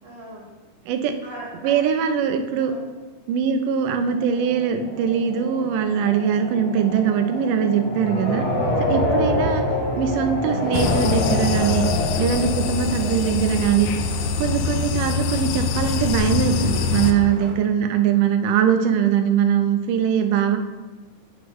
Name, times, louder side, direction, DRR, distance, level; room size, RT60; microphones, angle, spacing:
voice 1, 0.0-0.4 1.2-2.0 2.6-2.8 8.5-9.1 12.1-12.4 17.4-18.0, right 1 dB, 35° right, -5 dB, 1.7 m, -41 dB
voice 2, 1.6-2.7 3.3-8.4 8.9-9.6 10.0-11.8 12.2-13.9 14.4-20.6, right 8 dB, 90° right, 7 dB, 2.2 m, -21 dB
sound 1, 3.9-14.7, left 1 dB, 45° left, 1.8 m, -27 dB
Vehicle horn car horn honking / Traffic noise roadway noise, 10.4-17.5, right 3 dB, 65° right, 2.0 m, -41 dB
sound 2, 10.7-17.1, left 6 dB, 80° left, 1.8 m, -24 dB
9.9 x 4.6 x 3.1 m, 1.3 s
omnidirectional pair, 3.7 m